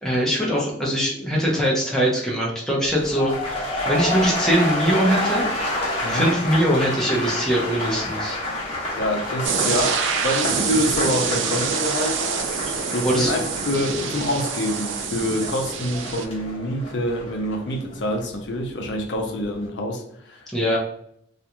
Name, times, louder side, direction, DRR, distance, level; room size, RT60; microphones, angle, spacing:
voice 1, 0.0-5.5 6.1-8.4 13.0-13.3 20.5-20.8, equal, ahead, -4 dB, 0.6 m, -22 dB
sound 1, 2.9-18.9 19.2-19.7, left 1 dB, 30° left, 0.8 m, -29 dB
voice 2, 6.0-6.3 9.0-12.3 12.9-20.5, left 1 dB, 75° left, 3 dB, 0.5 m, -26 dB
sound 2, 9.4-16.2, right 6 dB, 90° right, 0.4 m, -26 dB
2.4 x 2.2 x 2.8 m, 0.68 s
head